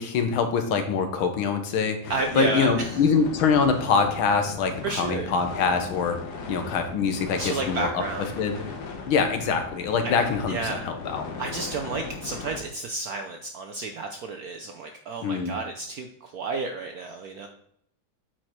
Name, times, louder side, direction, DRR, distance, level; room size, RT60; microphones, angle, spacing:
voice 1, 0.0-6.2 6.5-8.0 8.4-8.6 9.1-11.3 15.2-15.6, left 5 dB, 80° left, 7 dB, 1.8 m, -24 dB
sound 1, 2.0-12.6, left 4 dB, 55° left, 1.6 m, -38 dB
voice 2, 2.1-3.0 4.8-5.3 7.3-8.3 10.0-10.1 10.5-10.8 11.4-17.5, right 3 dB, 70° right, 5 dB, 0.8 m, -31 dB
8.5 x 4.5 x 4.5 m, 0.72 s
omnidirectional pair, 2.3 m